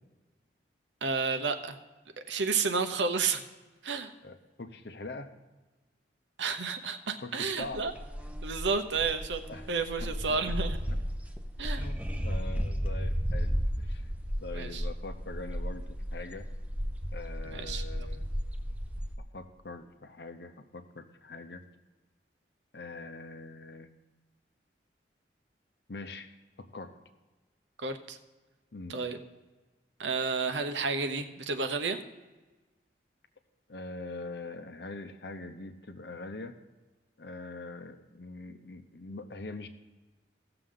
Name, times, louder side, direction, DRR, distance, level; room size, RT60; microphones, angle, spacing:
voice 1, 1.0-1.8 2.3-3.4 3.8-4.1 6.4-7.9 8.4-9.4 9.7-10.8 11.6-11.9 14.5-14.8 17.5-17.8 27.8-28.2 28.9-29.2 30.0-32.0, right 4 dB, 85° right, 8 dB, 0.9 m, -31 dB
voice 2, 4.2-5.3 7.2-7.8 9.5-9.7 10.0-10.4 11.8-14.1 14.4-16.5 17.1-18.2 19.3-21.6 22.7-23.9 25.9-26.3 26.6-26.9 28.7-29.0 33.7-36.6 37.2-39.7, left 2 dB, 65° left, 9 dB, 0.8 m, -43 dB
sound 1, 7.6-19.1, equal, 10° right, 0.6 m, -34 dB
17.0 x 6.8 x 3.8 m, 1.2 s
head